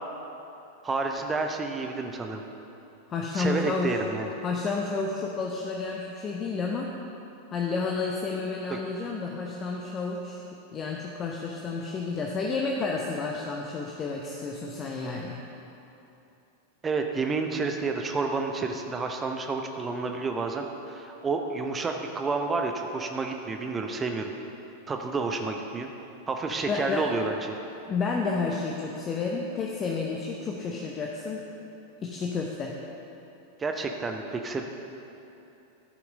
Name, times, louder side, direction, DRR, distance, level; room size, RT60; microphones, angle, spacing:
voice 1, 0.8-2.4 3.3-4.3 8.7-8.8 16.8-24.3 24.9-25.9 26.3-27.5 33.6-34.7, right 4 dB, 15° right, 3 dB, 0.7 m, -30 dB
voice 2, 3.1-4.0 4.4-6.9 7.5-10.4 10.7-15.4 26.7-27.1 27.9-31.5 32.0-32.7, left 4 dB, 25° left, -1 dB, 0.8 m, -31 dB
12.5 x 5.8 x 5.4 m, 2.9 s
figure-of-eight pair, 90°, 0 cm